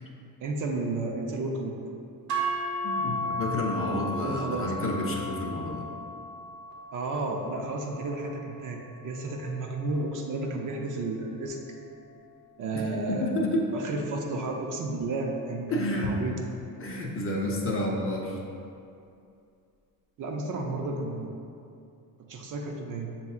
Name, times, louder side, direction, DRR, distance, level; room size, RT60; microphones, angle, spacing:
voice 1, 0.4-1.8 4.2-4.7 6.9-11.6 12.6-13.3 13.7-16.4 20.2-21.4 22.2-23.1, right 2 dB, 55° right, 1 dB, 0.5 m, -32 dB
sound 1, 2.3-10.5, equal, 85° right, 0.8 m, -35 dB
voice 2, 2.8-5.8 12.7-13.6 15.7-16.2 16.8-18.4, left 1 dB, 35° left, -1 dB, 0.6 m, -30 dB
6.9 x 2.7 x 2.3 m, 2.5 s
cardioid pair, 125°, 38 cm